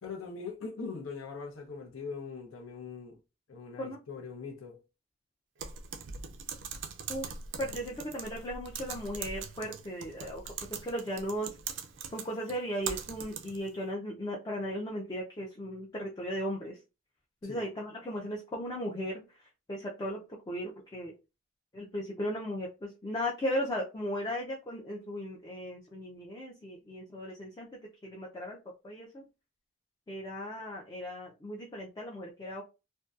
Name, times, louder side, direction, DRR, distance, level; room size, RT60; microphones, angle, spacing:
voice 1, 0.0-3.2 3.5-4.8 17.4-17.6, left 5 dB, 85° left, 0.6 m, -41 dB
Typing, 5.6-13.7, right 6 dB, 65° right, 0.4 m, -41 dB
voice 2, 7.1-11.6 12.1-16.8 17.4-21.1 21.7-28.6 28.8-29.3 30.1-32.6, equal, 20° left, 0.3 m, -37 dB
2.6 x 2.2 x 2.3 m
head